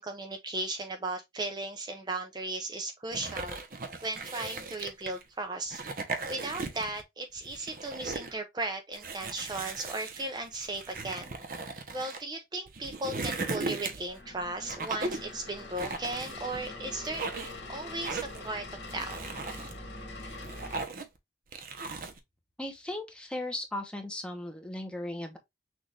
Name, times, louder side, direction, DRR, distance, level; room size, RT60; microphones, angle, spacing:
voice 1, 0.0-3.6 4.0-5.8 6.3-11.3 11.9-17.3 17.7-19.2, right 2 dB, 25° right, 0.5 m, -36 dB
sound 1, 3.1-5.2 5.7-7.0 7.4-8.3 8.9-12.2 12.7-14.2 14.6-15.3 15.8-16.7 17.0-17.6 18.0-18.5 18.9-19.7 20.2-21.2 21.5-22.2, right 3 dB, 50° right, 0.8 m, -37 dB
sound 2, 14.1-20.8, left 2 dB, 80° left, 1.9 m, -43 dB
voice 2, 22.6-25.4, left 1 dB, 5° left, 0.9 m, -37 dB
6.3 x 2.5 x 3.3 m
head